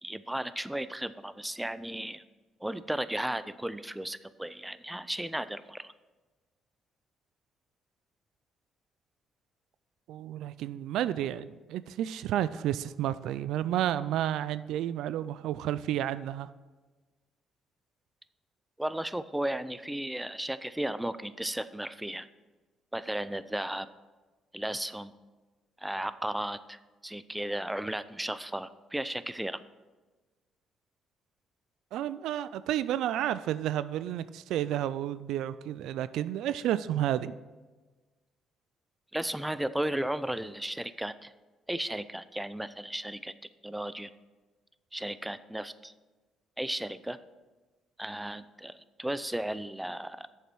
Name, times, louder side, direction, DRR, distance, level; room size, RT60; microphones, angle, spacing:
voice 1, 0.0-2.2 2.6-5.9 18.8-22.3 22.9-23.9 24.5-25.1 25.8-29.6 39.1-41.3 41.7-43.3 43.6-44.1 44.9-45.9 46.6-47.2 48.0-50.3, right 1 dB, 5° right, 15 dB, 0.5 m, -35 dB
voice 2, 10.1-16.5 31.9-37.4, right 12 dB, 80° right, 15 dB, 0.3 m, -31 dB
8.2 x 7.0 x 6.2 m, 1.3 s
supercardioid pair, 75°, 0 cm